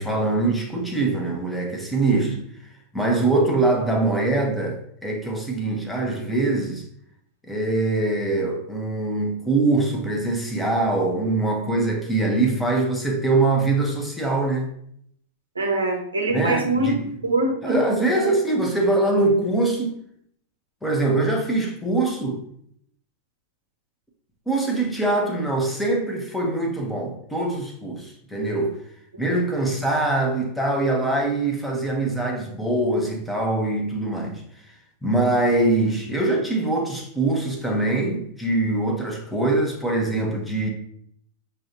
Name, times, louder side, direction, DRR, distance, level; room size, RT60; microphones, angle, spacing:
voice 1, 0.0-6.8 7.5-14.7 16.3-17.0 17.6-20.0 20.8-22.4 24.5-28.8 29.2-34.4 35.0-40.7, right 2 dB, 5° left, 0.8 m, -23 dB
voice 2, 15.5-16.9 17.2-17.8 18.1-18.3, right 2 dB, 80° right, 0.9 m, -23 dB
6.2 x 2.4 x 2.9 m
figure-of-eight pair, 90°, 0 cm